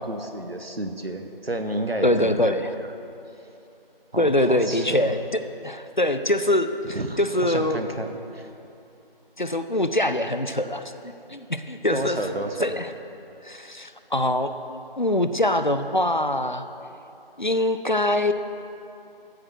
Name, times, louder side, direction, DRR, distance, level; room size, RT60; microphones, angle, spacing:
voice 1, 0.0-2.6 4.1-5.1 6.8-8.5 11.9-12.7, right 1 dB, 80° right, 5 dB, 1.3 m, -31 dB
voice 2, 2.0-2.7 4.2-5.2 5.6-7.8 9.4-12.2 12.6-12.9 13.4-16.6 17.4-18.3, left 1 dB, 55° left, 9 dB, 0.6 m, -24 dB
14.0 x 6.0 x 6.4 m, 2.8 s
figure-of-eight pair, 175°, 30 cm